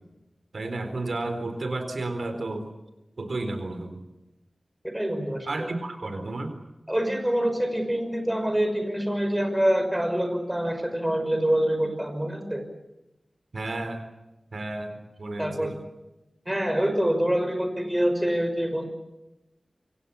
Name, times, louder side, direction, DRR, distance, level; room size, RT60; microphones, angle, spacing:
voice 1, 0.5-2.7 3.2-4.0 5.5-6.5 13.5-14.0 14.5-15.8, right 2 dB, 70° right, 8 dB, 4.0 m, -32 dB
voice 2, 4.9-5.7 6.9-12.6 15.4-15.7 16.5-18.9, equal, 10° right, 6 dB, 5.6 m, -25 dB
27.0 x 25.5 x 7.1 m, 1.0 s
wide cardioid pair, 85°, 0 cm